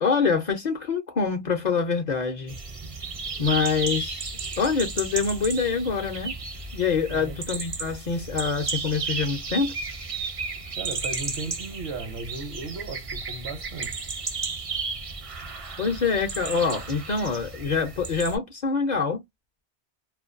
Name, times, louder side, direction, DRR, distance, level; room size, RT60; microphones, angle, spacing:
voice 1, 0.0-2.6 3.4-4.3 4.6-6.3 6.7-9.7 15.8-19.2, left 5 dB, 55° left, 0.6 m, -25 dB
sound 1, 2.5-18.4, right 4 dB, 40° right, 0.5 m, -33 dB
voice 2, 7.1-7.4 10.8-14.0, right 3 dB, 75° right, 0.9 m, -36 dB
2.4 x 2.2 x 2.4 m
omnidirectional pair, 1.1 m